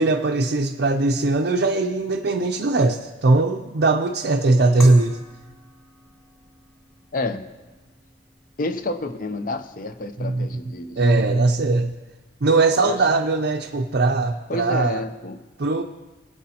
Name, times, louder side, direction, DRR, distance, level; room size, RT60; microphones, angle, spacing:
voice 1, 0.0-5.2 10.2-10.6 11.0-11.9 12.4-15.0 15.6-15.8, right 3 dB, 55° right, 2 dB, 0.5 m, -20 dB
sound 1, 4.8-13.6, equal, 15° left, 1.9 m, -43 dB
voice 2, 7.1-7.4 8.6-11.0 12.8-13.1 14.5-15.4, left 2 dB, 45° left, 9 dB, 0.6 m, -29 dB
21.0 x 8.4 x 2.9 m, 1.2 s
head